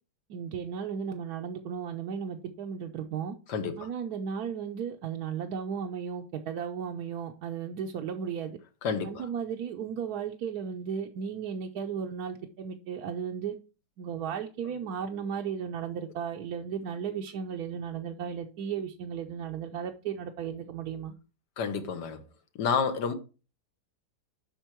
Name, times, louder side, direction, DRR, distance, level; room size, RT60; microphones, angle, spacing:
voice 1, 0.3-3.3 3.8-8.6 9.0-13.5 14.0-21.1, right 7 dB, 70° right, 1.2 m, -35 dB
voice 2, 3.5-3.9 8.8-9.3 21.6-22.2 22.5-23.1, left 6 dB, 75° left, 1.5 m, -30 dB
8.1 x 5.9 x 4.5 m
omnidirectional pair, 1.9 m